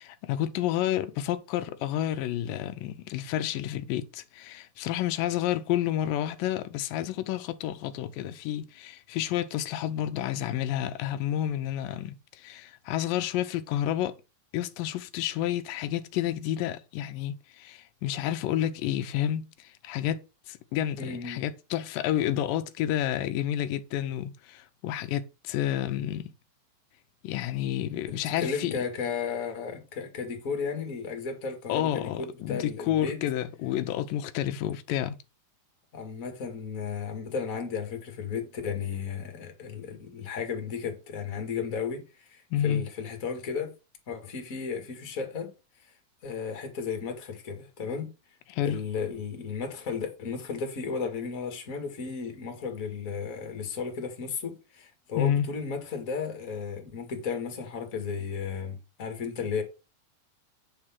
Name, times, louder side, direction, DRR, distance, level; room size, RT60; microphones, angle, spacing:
voice 1, 0.0-14.2 14.5-26.3 27.2-28.7 31.7-35.2 42.5-42.8 48.5-48.8 55.2-55.5, left 12 dB, 90° left, 2.5 m, -30 dB
voice 2, 21.0-21.4 28.4-33.2 35.9-43.7 44.1-45.5 46.2-48.1 48.6-59.6, left 6 dB, 30° left, 2.0 m, -34 dB
8.9 x 4.9 x 5.9 m
omnidirectional pair, 3.9 m